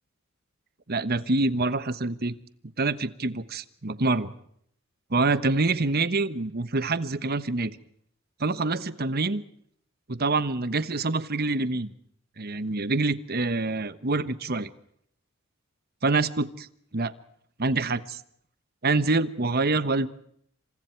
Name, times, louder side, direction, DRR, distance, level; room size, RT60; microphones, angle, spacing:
voice 1, 0.9-2.3 2.8-4.3 5.1-7.7 8.4-9.4 10.1-11.9 12.4-14.7 16.0-16.7 16.9-17.1 17.6-18.2 18.8-20.1, right 3 dB, 45° right, 14 dB, 1.2 m, -26 dB
28.0 x 26.5 x 4.6 m, 0.67 s
head